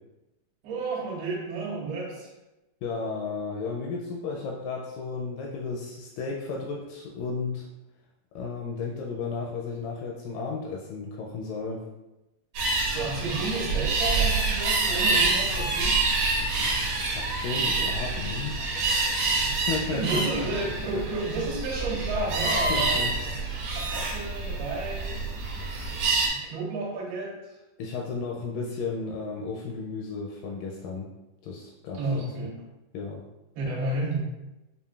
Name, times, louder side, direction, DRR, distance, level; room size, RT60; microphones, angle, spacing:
voice 1, 0.6-2.3 12.9-16.0 19.3-19.6 19.9-23.4 23.8-25.3 26.3-27.6 31.9-32.6 33.6-34.2, right 3 dB, 85° right, -4 dB, 2.9 m, -32 dB
voice 2, 2.8-7.7 8.4-11.9 16.4-18.6 19.5-20.5 20.9-21.0 22.7-23.2 27.8-31.1 31.4-32.0 32.9-33.2, left 4 dB, 85° left, -1 dB, 2.0 m, -33 dB
sound 1, 12.5-26.3, right 3 dB, 70° right, 1.6 m, -27 dB
6.8 x 2.5 x 2.3 m, 0.99 s
omnidirectional pair, 4.2 m